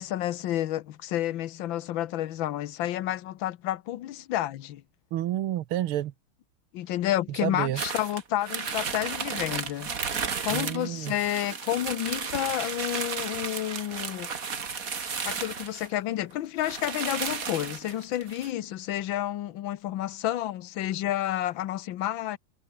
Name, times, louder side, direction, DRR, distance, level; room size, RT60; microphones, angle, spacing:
voice 1, 0.0-4.8 6.7-9.9 10.4-14.3 15.2-22.4, left 13 dB, 65° left, 1.6 m, -30 dB
voice 2, 5.1-6.1 7.4-7.8 10.5-11.1, right 12 dB, 75° right, 1.8 m, -29 dB
sound 1, 7.8-15.9 16.3-16.4 16.6-18.5, right 6 dB, 40° right, 2.1 m, -33 dB
omnidirectional pair, 2.4 m